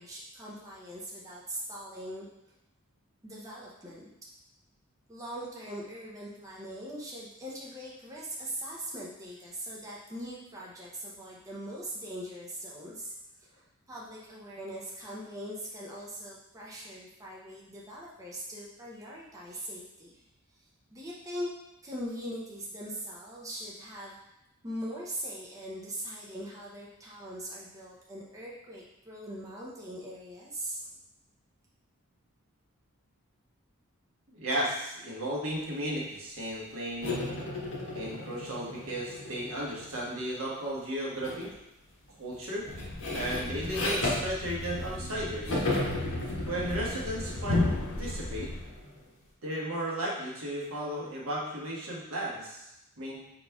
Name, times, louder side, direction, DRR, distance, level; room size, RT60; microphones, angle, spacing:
voice 1, 0.0-2.3 3.2-4.1 5.1-13.1 13.4-20.2 20.9-21.5 21.8-24.1 24.6-30.8, equal, 15° right, -5 dB, 0.6 m, -41 dB
voice 2, 34.3-37.4 37.9-41.5 42.2-42.7 43.1-45.6 46.5-47.6 48.0-48.5 49.4-52.7 53.0-53.2, right 1 dB, 75° right, -4 dB, 1.3 m, -34 dB
sound 1, 37.0-40.3 41.2-41.6 41.9-45.1 45.5-49.0, left 2 dB, 80° left, 1.3 m, -35 dB
Thump thud, 42.6-48.8, left 2 dB, 60° left, 0.6 m, -34 dB
5.0 x 4.1 x 2.3 m, 0.87 s
head